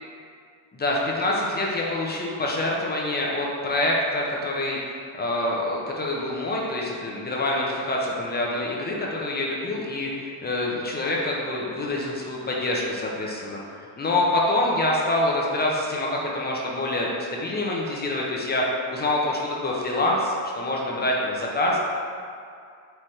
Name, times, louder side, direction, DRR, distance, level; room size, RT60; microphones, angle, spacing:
voice 1, 0.7-21.8, left 1 dB, 20° left, -3 dB, 0.6 m, -26 dB
4.3 x 3.4 x 3.2 m, 2.3 s
cardioid pair, 130°, 49 cm